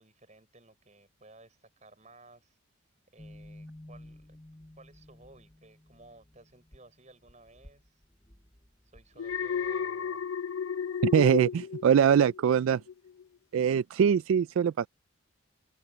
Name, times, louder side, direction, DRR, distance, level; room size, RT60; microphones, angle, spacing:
voice 1, 0.0-2.6 3.1-4.4 4.8-8.0 8.9-10.3, right 2 dB, 35° right, 6.6 m, -56 dB
sound 1, 3.2-9.7, left 1 dB, 15° left, 1.3 m, -52 dB
Alarm, 9.2-12.5 12.9-13.2, left 7 dB, 85° left, 0.7 m, -33 dB
voice 2, 11.0-12.8 13.5-14.9, right 7 dB, 75° right, 0.3 m, -23 dB
open air
head